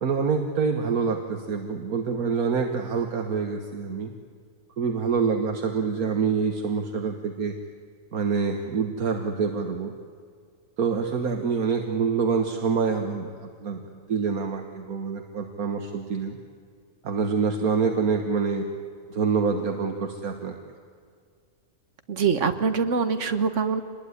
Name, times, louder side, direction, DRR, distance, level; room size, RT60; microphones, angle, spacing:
voice 1, 0.0-4.1 4.8-7.6 8.1-9.9 10.8-13.8 14.1-16.4 17.0-18.6 19.1-20.5, right 5 dB, 70° right, 4 dB, 1.9 m, -26 dB
voice 2, 22.1-23.8, right 5 dB, 55° right, 9 dB, 1.7 m, -24 dB
26.0 x 20.5 x 9.8 m, 2.1 s
omnidirectional pair, 1.6 m